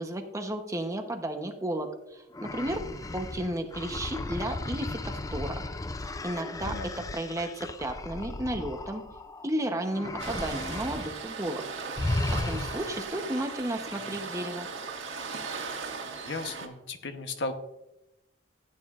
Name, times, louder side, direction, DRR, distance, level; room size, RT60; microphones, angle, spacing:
voice 1, 0.0-2.8 3.1-5.6 6.2-9.0 9.4-11.6 12.3-14.7, right 1 dB, 15° right, 5 dB, 0.9 m, -33 dB
sound 1, 2.3-9.5 9.9-11.2 11.4-11.6 12.0-13.1, left 2 dB, 20° left, 0.4 m, -35 dB
Waves surf, 10.2-16.7, right 4 dB, 75° right, 1.6 m, -37 dB
voice 2, 16.2-17.5, left 3 dB, 65° left, 7 dB, 1.0 m, -35 dB
15.0 x 9.1 x 2.5 m, 0.91 s
head